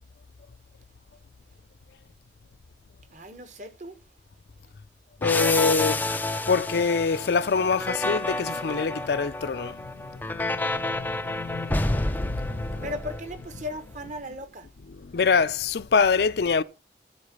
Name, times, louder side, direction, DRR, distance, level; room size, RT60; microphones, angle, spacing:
voice 1, 3.1-4.0 12.8-14.7, left 1 dB, 45° right, 1.1 m, -37 dB
voice 2, 5.2-6.0 6.5-13.0 14.9-16.6, left 5 dB, 70° left, 0.5 m, -25 dB
sound 1, 5.2-13.7, left 2 dB, 10° left, 0.4 m, -29 dB
8.1 x 4.7 x 6.7 m
head